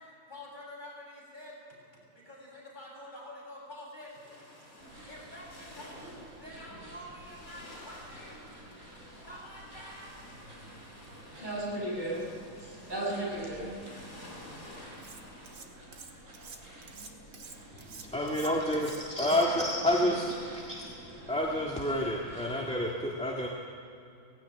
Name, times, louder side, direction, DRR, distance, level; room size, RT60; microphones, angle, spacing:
voice 1, 0.0-1.6 2.1-4.2 5.1-6.1 6.4-8.4 9.2-10.2 18.2-20.8, left 1 dB, 20° left, -5 dB, 7.5 m, -48 dB
sound 1, 4.0-15.5, left 1 dB, 45° left, 6.0 m, -52 dB
sound 2, 4.8-22.7, right 1 dB, 40° right, 4.3 m, -50 dB
voice 2, 11.0-14.3, right 1 dB, 20° right, -5 dB, 6.8 m, -36 dB
Cutlery silverware, 15.0-15.7 15.9-19.7, right 5 dB, 60° right, 2.3 m, -48 dB
voice 3, 18.0-20.8 21.3-23.5, left 1 dB, 5° left, -3 dB, 1.6 m, -29 dB
18.0 x 17.0 x 9.4 m, 2.6 s
omnidirectional pair, 2.1 m